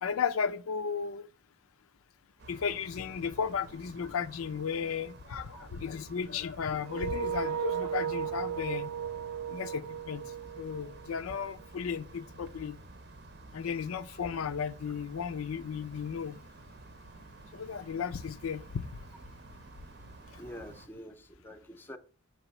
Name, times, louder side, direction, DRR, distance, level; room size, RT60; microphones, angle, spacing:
voice 1, 0.0-1.3 2.5-8.9 9.5-10.3 10.6-12.8 13.5-16.4 17.5-18.8, left 6 dB, 90° left, 0.5 m, -34 dB
sound 1, 2.4-20.9, right 2 dB, 55° right, 0.7 m, -51 dB
sound 2, 6.8-11.7, right 8 dB, 85° right, 0.3 m, -35 dB
voice 2, 20.4-22.0, equal, 10° left, 0.5 m, -46 dB
6.6 x 3.0 x 5.4 m
head